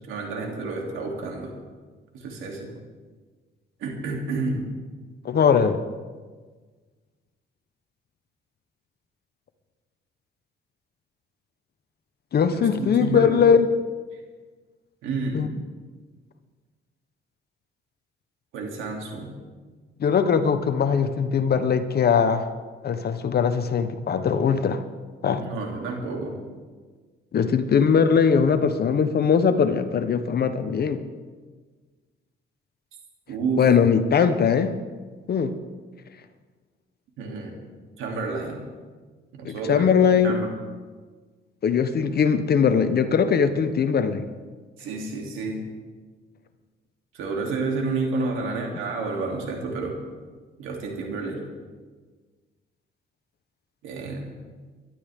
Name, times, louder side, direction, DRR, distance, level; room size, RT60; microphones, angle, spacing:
voice 1, 0.1-1.5 2.1-2.7 3.8-4.6 12.5-13.4 15.0-15.5 18.5-19.3 25.4-26.3 33.3-33.6 37.2-37.6 38.0-38.6 39.3-40.5 44.8-45.6 47.1-50.0 50.6-51.4 53.8-54.2, right 3 dB, 90° right, 0 dB, 3.0 m, -30 dB
voice 2, 5.2-5.8 12.3-13.7 15.3-15.5 20.0-22.5 22.8-24.8 25.2-25.4 27.3-31.0 33.6-34.7 35.3-35.5 39.4-40.4 41.6-44.2, left 6 dB, 55° left, 9 dB, 1.0 m, -20 dB
23.5 x 12.0 x 3.7 m, 1.4 s
cardioid pair, 90°, 20 cm